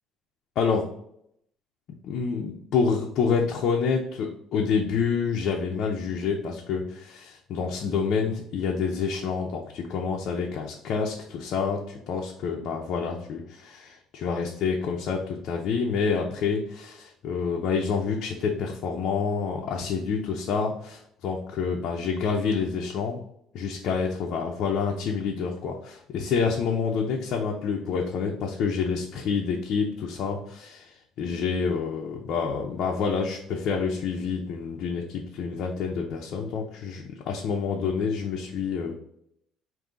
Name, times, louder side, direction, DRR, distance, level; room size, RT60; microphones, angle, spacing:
voice 1, 2.0-23.2 23.5-38.9, left 5 dB, 50° left, 0 dB, 0.6 m, -28 dB
5.3 x 2.7 x 3.7 m, 0.72 s
cardioid pair, 165°, 0 cm